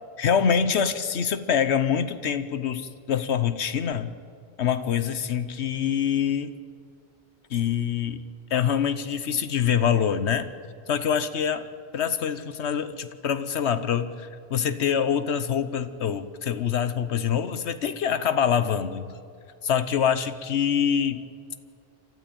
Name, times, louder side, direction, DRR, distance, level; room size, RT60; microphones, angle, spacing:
voice 1, 0.2-4.1 4.6-6.5 7.5-8.2 8.5-10.5 10.9-11.7 11.9-19.1 19.6-21.2, left 8 dB, 80° left, 12 dB, 1.2 m, -25 dB
28.5 x 12.5 x 8.7 m, 2.6 s
omnidirectional pair, 1.1 m